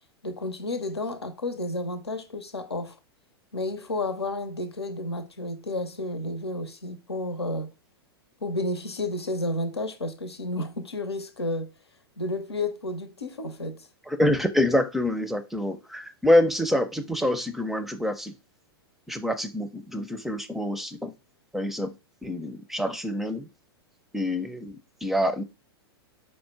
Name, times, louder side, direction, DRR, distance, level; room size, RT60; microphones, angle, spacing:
voice 1, 0.2-3.0 3.5-7.7 8.4-11.7 12.2-13.9, left 2 dB, 90° left, 0.7 m, -31 dB
voice 2, 14.1-18.3 19.1-21.1 21.5-21.9 22.2-23.5 24.1-24.8 25.0-25.4, left 1 dB, ahead, 0.5 m, -26 dB
4.5 x 2.1 x 4.4 m
figure-of-eight pair, 105°, 13 cm